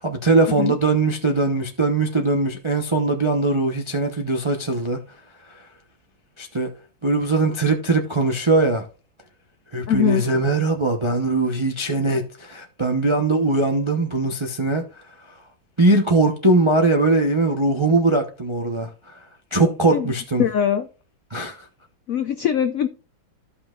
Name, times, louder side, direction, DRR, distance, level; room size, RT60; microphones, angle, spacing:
voice 1, 0.0-5.0 6.4-6.7 7.0-8.8 9.7-14.8 15.8-19.2 19.5-20.4 21.3-21.6, right 2 dB, 50° right, 0.3 m, -20 dB
voice 2, 9.9-10.2 19.9-20.1 20.4-20.9 22.1-22.9, left 9 dB, 85° left, 0.7 m, -21 dB
14.5 x 5.6 x 2.4 m
omnidirectional pair, 2.1 m